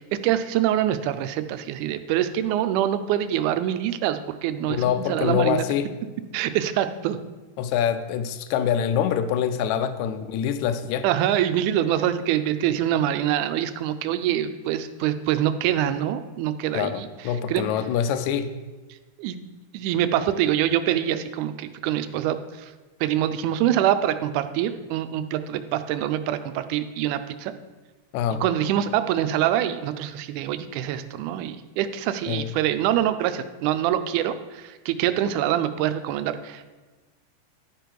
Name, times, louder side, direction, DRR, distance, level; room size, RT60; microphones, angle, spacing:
voice 1, 0.0-5.6 6.3-7.2 11.0-17.1 17.5-17.7 19.2-19.4 19.7-22.7 23.0-27.5 28.4-36.7, right 11 dB, 85° right, 10 dB, 2.0 m, -25 dB
voice 2, 4.7-5.9 7.6-11.1 16.7-18.5 28.1-28.4 32.3-32.5, left 8 dB, 80° left, 11 dB, 1.8 m, -25 dB
11.5 x 5.2 x 4.6 m, 1.3 s
omnidirectional pair, 3.5 m